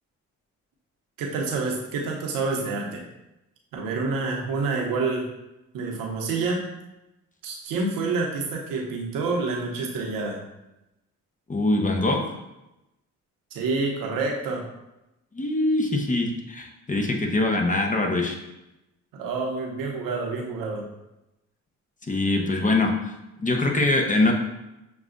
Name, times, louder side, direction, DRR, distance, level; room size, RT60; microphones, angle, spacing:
voice 1, 1.2-3.0 3.7-5.3 5.7-6.7 7.4-10.4 13.5-14.6 19.1-20.8, right 3 dB, 90° right, 0 dB, 0.9 m, -28 dB
voice 2, 11.5-12.2 15.3-18.4 22.0-23.1 23.4-24.3, left 2 dB, 25° left, 2 dB, 0.8 m, -23 dB
6.8 x 2.3 x 2.5 m, 0.93 s
supercardioid pair, 65°, 33 cm